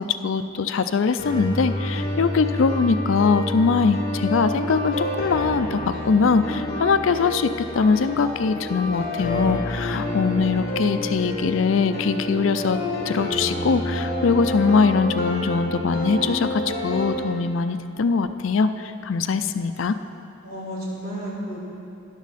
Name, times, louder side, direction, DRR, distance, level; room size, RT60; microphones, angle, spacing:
voice 1, 0.0-12.8 13.1-20.0, left 5 dB, 70° left, 11 dB, 0.4 m, -22 dB
sound 1, 1.2-17.2, left 1 dB, 50° left, 2.3 m, -29 dB
sound 2, 7.4-15.2, right 3 dB, 25° right, 1.8 m, -46 dB
voice 2, 20.4-21.6, equal, 45° right, -6 dB, 3.1 m, -33 dB
12.5 x 10.5 x 4.2 m, 2.6 s
head